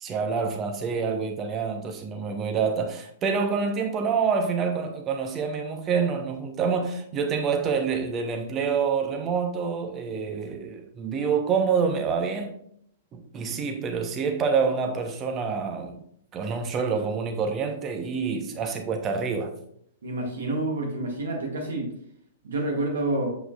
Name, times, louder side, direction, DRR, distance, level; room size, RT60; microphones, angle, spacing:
voice 1, 0.0-12.5 13.1-16.0 16.3-19.5, right 5 dB, 25° right, 1.0 m, -27 dB
voice 2, 20.0-21.9 22.4-23.3, right 2 dB, 60° right, 1.9 m, -28 dB
7.4 x 5.7 x 2.5 m
figure-of-eight pair, 105°, 0 cm